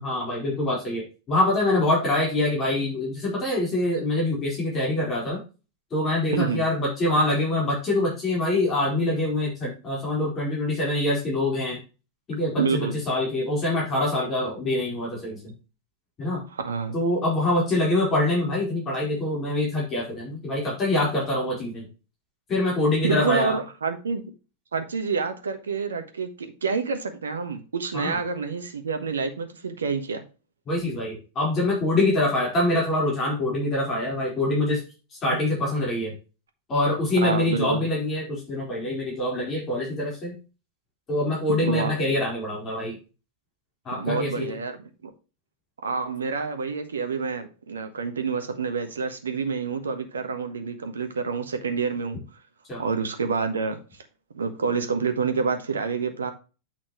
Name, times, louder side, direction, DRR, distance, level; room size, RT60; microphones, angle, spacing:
voice 1, 0.0-5.4 5.9-11.8 12.3-15.5 16.2-16.4 16.9-21.9 22.5-23.6 27.9-28.2 30.7-34.8 35.2-36.1 36.7-40.4 41.1-43.0 43.8-44.6 52.7-52.8, left 2 dB, 25° left, 4.4 m, -25 dB
voice 2, 6.3-6.6 12.6-13.0 16.5-17.0 23.0-24.3 24.7-30.3 37.2-37.9 41.6-42.1 44.0-45.1 45.8-52.2 52.8-54.0 54.3-56.3, right 5 dB, 70° right, 1.3 m, -28 dB
8.8 x 5.9 x 3.1 m
figure-of-eight pair, 90°, 0 cm